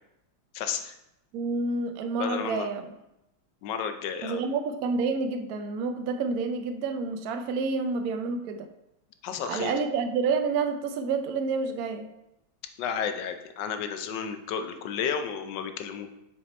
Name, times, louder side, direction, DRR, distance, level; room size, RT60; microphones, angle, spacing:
voice 1, 0.5-0.9 2.2-2.7 3.6-4.4 9.2-9.7 12.8-16.1, left 7 dB, 70° left, 7 dB, 1.2 m, -32 dB
voice 2, 1.3-2.9 4.2-8.7 9.5-12.1, right 4 dB, 65° right, 7 dB, 0.9 m, -29 dB
6.8 x 4.7 x 4.2 m, 0.87 s
omnidirectional pair, 2.2 m